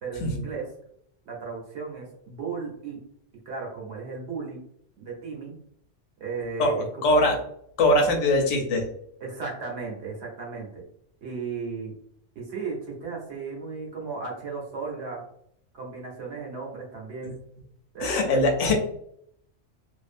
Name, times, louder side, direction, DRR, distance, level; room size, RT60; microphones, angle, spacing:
voice 1, 0.0-0.7 1.2-3.0 3.5-4.6 5.0-5.6 6.2-7.2 9.2-10.8 11.2-11.9 12.3-15.2 15.7-17.4 17.9-18.4, right 4 dB, 65° right, -2 dB, 1.1 m, -35 dB
voice 2, 6.6-7.4 7.8-8.8 18.0-18.7, left 1 dB, 85° left, 2 dB, 1.0 m, -22 dB
2.6 x 2.2 x 2.5 m, 0.70 s
omnidirectional pair, 1.2 m